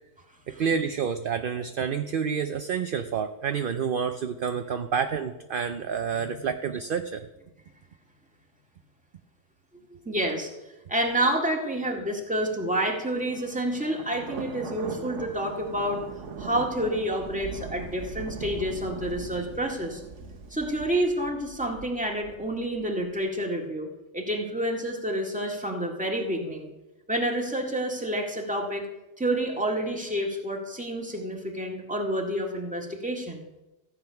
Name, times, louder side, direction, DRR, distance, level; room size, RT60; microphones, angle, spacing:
voice 1, 0.5-7.2, right 7 dB, 55° right, 8 dB, 0.7 m, -29 dB
voice 2, 10.0-10.5 10.9-16.0 16.4-20.0 20.5-26.7 27.1-28.9 29.2-33.4, right 1 dB, 5° right, -1 dB, 2.0 m, -29 dB
Thunder, 13.3-23.1, right 5 dB, 85° right, 1.3 m, -40 dB
15.0 x 8.5 x 5.7 m, 1.0 s
omnidirectional pair, 1.2 m